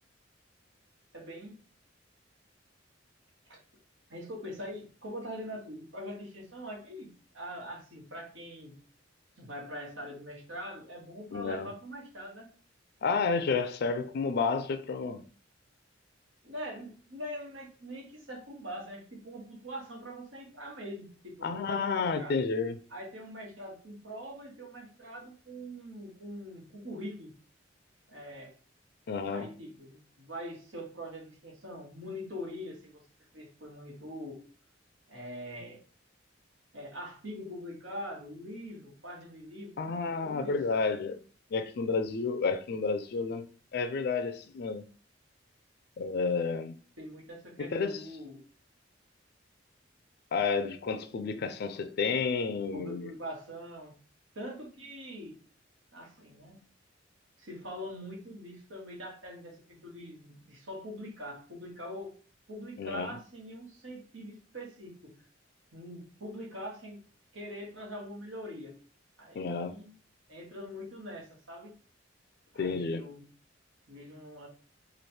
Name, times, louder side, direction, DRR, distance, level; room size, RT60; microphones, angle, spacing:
voice 1, 1.1-1.6 3.5-3.6 4.1-8.8 9.4-12.5 16.4-22.4 22.9-27.3 28.1-28.5 29.3-33.0 33.3-34.4 35.1-35.8 36.7-40.5 47.0-48.4 52.7-54.0 54.3-55.4 55.9-56.6 57.4-62.1 62.5-65.2 65.7-67.0 67.3-68.8 69.2-70.0 70.3-71.8 72.5-73.3 73.9-74.5, equal, 85° right, 1.4 m, -43 dB
voice 2, 11.3-11.7 13.0-15.2 21.4-22.8 29.1-29.5 39.8-41.2 41.5-43.5 43.7-44.8 46.0-46.7 47.6-48.1 50.3-53.1 62.8-63.2 69.4-69.8 72.6-73.0, left 4 dB, 55° left, 0.4 m, -31 dB
3.2 x 2.5 x 4.3 m
head